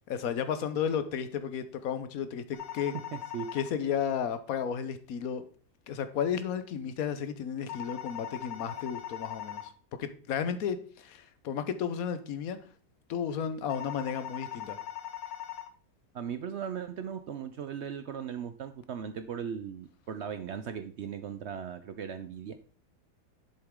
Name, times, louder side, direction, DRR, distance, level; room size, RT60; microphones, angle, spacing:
voice 1, 0.1-2.9 3.5-5.5 5.9-9.7 10.0-12.6 13.1-14.8, left 7 dB, 60° left, 11 dB, 1.2 m, -33 dB
sound 1, 2.5-3.7 7.7-9.7 13.7-15.7, left 11 dB, 85° left, 1.4 m, -40 dB
voice 2, 3.1-3.5 16.1-22.6, right 8 dB, 75° right, 10 dB, 0.6 m, -38 dB
7.9 x 7.0 x 3.6 m, 0.41 s
omnidirectional pair, 1.8 m